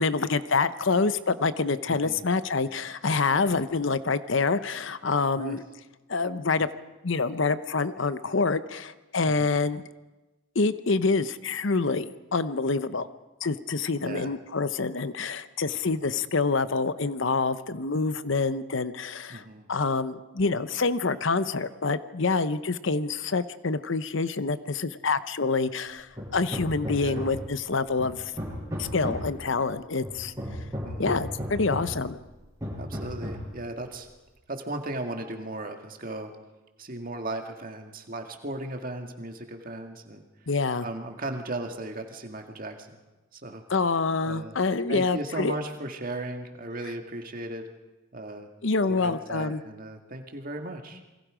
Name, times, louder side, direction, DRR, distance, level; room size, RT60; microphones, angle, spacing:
voice 1, 0.0-5.6 6.1-6.7 7.0-9.8 10.5-13.1 13.4-19.4 19.7-28.3 28.8-30.3 31.0-32.2 40.5-40.9 43.7-45.6 48.6-49.6, left 4 dB, 60° left, 13 dB, 0.8 m, -26 dB
voice 2, 1.9-2.2 5.4-5.6 9.2-9.5 14.0-14.3 19.3-19.7 27.0-27.2 30.8-31.2 32.8-34.1 34.5-36.3 36.8-40.2 40.8-43.0 43.3-43.6 44.2-44.5 44.9-47.6 48.1-48.5 48.8-51.0, right 2 dB, 40° right, 4 dB, 2.0 m, -36 dB
Hammer, 26.2-27.6 28.0-29.4 30.0-32.0 32.6-33.5, equal, 15° right, 6.2 m, -34 dB
28.0 x 22.0 x 5.1 m, 1.1 s
head